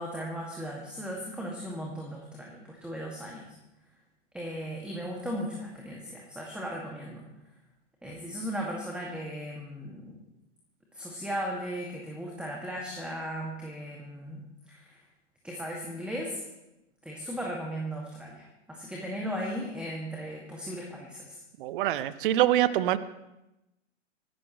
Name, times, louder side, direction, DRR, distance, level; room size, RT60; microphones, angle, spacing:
voice 1, 0.0-3.4 4.3-7.2 8.0-10.2 10.9-15.0 15.4-16.4 17.0-21.4, equal, 5° right, -1 dB, 2.2 m, -37 dB
voice 2, 21.6-23.0, right 13 dB, 45° right, 16 dB, 0.9 m, -24 dB
24.5 x 13.0 x 3.2 m, 0.93 s
figure-of-eight pair, 105°, 37 cm